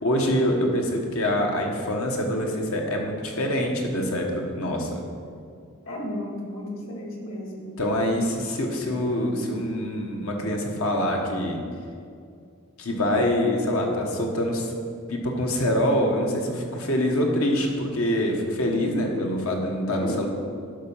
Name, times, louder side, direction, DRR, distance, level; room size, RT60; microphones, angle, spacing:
voice 1, 0.0-5.0 7.8-11.6 12.8-14.7 15.1-20.3, left 1 dB, 80° left, 1 dB, 1.3 m, -25 dB
voice 2, 5.9-7.7 20.0-20.1, left 1 dB, 65° left, -1 dB, 2.0 m, -34 dB
12.0 x 4.5 x 5.6 m, 2.3 s
head